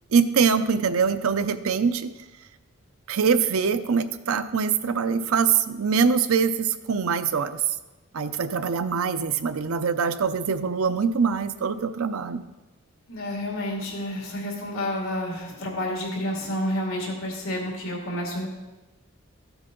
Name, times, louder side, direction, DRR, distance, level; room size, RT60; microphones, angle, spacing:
voice 1, 0.1-2.1 3.1-7.6 8.1-12.4, right 6 dB, 80° right, 11 dB, 0.5 m, -23 dB
voice 2, 13.1-18.5, left 1 dB, 70° left, -1 dB, 2.5 m, -30 dB
14.0 x 8.0 x 3.8 m, 1.1 s
head